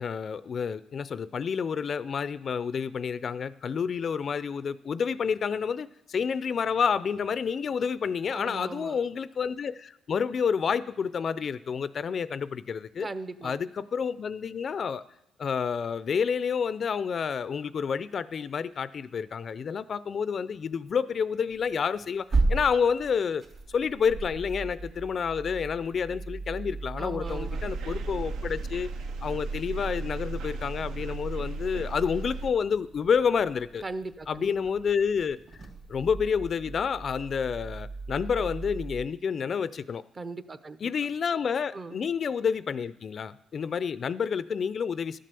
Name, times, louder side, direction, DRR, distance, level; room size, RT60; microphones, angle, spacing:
voice 1, 0.0-13.1 13.4-15.0 15.4-23.4 23.7-28.9 29.2-33.8 34.3-35.4 35.9-40.0 40.8-45.2, left 6 dB, 50° left, 16 dB, 0.4 m, -29 dB
voice 2, 8.3-9.0 13.0-13.6 24.8-24.9 27.0-27.7 33.8-34.5 40.2-40.9 41.7-42.0, right 3 dB, 30° right, 12 dB, 0.7 m, -39 dB
sound 1, 21.5-39.1, right 3 dB, 50° right, 2.8 m, -36 dB
sound 2, 27.2-32.5, right 3 dB, 75° right, 0.7 m, -35 dB
12.5 x 7.5 x 6.8 m, 0.81 s
cardioid pair, 90°, 0 cm